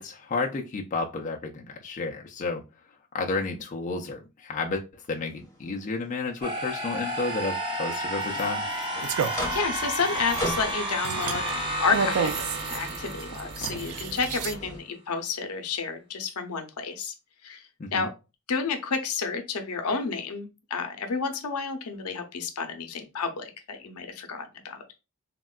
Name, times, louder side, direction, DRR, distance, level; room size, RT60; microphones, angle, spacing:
voice 1, 0.0-2.6 3.1-8.7 17.8-18.1, left 3 dB, 35° left, 0 dB, 0.3 m, -31 dB
sound 1, 5.1-14.8, equal, 15° left, 0.9 m, -40 dB
sound 2, 6.4-14.3, right 1 dB, 20° right, 0.8 m, -32 dB
sound 3, 8.2-14.5, right 6 dB, 75° right, 0.3 m, -33 dB
voice 2, 9.2-17.1 17.4-18.1 18.5-24.8, left 5 dB, 85° left, 6 dB, 0.6 m, -31 dB
3.5 x 2.1 x 2.3 m, 0.28 s
head